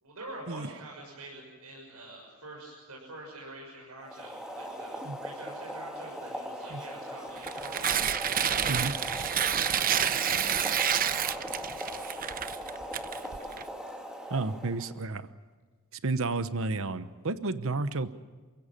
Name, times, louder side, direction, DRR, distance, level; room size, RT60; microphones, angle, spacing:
voice 1, 0.0-8.1 8.7-11.9, right 2 dB, 85° right, -2 dB, 6.7 m, -46 dB
Boiling, 4.0-15.0, equal, 5° right, 2.4 m, -40 dB
Tearing, 7.4-13.6, right 8 dB, 40° right, 0.8 m, -29 dB
voice 2, 14.3-15.3 15.9-18.1, right 3 dB, 65° right, 12 dB, 1.0 m, -31 dB
28.5 x 16.5 x 8.9 m, 1.4 s
head